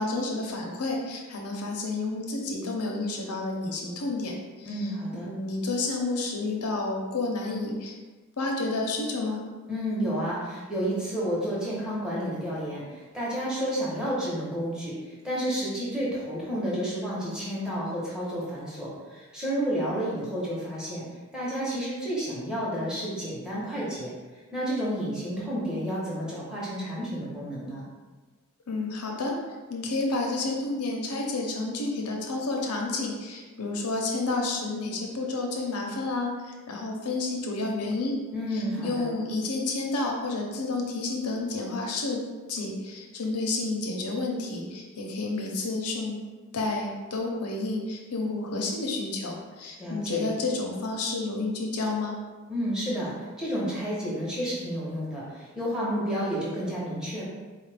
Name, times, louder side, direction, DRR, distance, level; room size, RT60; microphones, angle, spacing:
voice 1, 0.0-4.9 5.2-7.9 8.4-9.4 28.7-29.3 29.7-38.2 38.5-42.2 42.5-46.2 46.5-52.2, left 3 dB, 90° left, 0 dB, 0.7 m, -30 dB
voice 2, 4.6-5.3 9.7-21.0 21.3-24.1 24.5-27.8 38.3-39.1 49.8-50.3 52.5-57.2, equal, 5° right, -7 dB, 0.9 m, -31 dB
4.2 x 2.4 x 3.3 m, 1.3 s
head